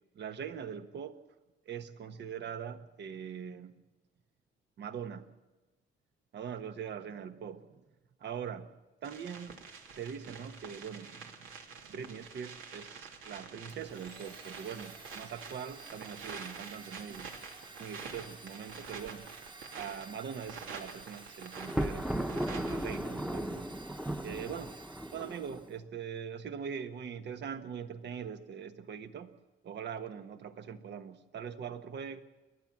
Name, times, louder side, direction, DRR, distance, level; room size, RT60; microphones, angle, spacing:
voice 1, 0.1-1.2 1.6-3.7 4.8-5.3 6.3-7.8 8.2-8.7 9.0-9.6 9.9-11.6 11.8-17.3 17.8-19.3 19.7-23.7 24.2-24.8 25.1-29.4 29.6-32.2, right 7 dB, 60° right, 9 dB, 1.4 m, -42 dB
sound 1, 9.0-23.0, right 5 dB, 85° right, 3.1 m, -47 dB
Domestic sounds home sounds, 13.7-25.8, right 3 dB, 25° right, 1.5 m, -52 dB
Thunder, 21.6-25.7, equal, 5° right, 1.1 m, -36 dB
29.5 x 12.0 x 7.4 m, 1.1 s
cardioid pair, 90°, 20 cm